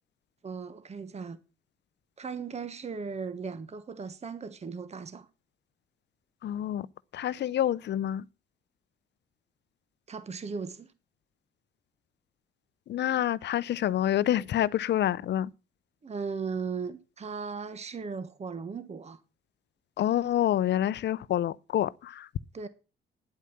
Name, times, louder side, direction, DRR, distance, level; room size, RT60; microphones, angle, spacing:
voice 1, 0.4-1.4 2.2-5.3 10.1-10.9 16.0-19.2 22.5-22.7, right 5 dB, 35° right, 1.2 m, -37 dB
voice 2, 6.4-6.9 7.1-8.2 12.9-15.5 20.0-22.3, left 11 dB, 60° left, 0.6 m, -27 dB
9.9 x 8.3 x 7.2 m
cardioid pair, 90°, 20 cm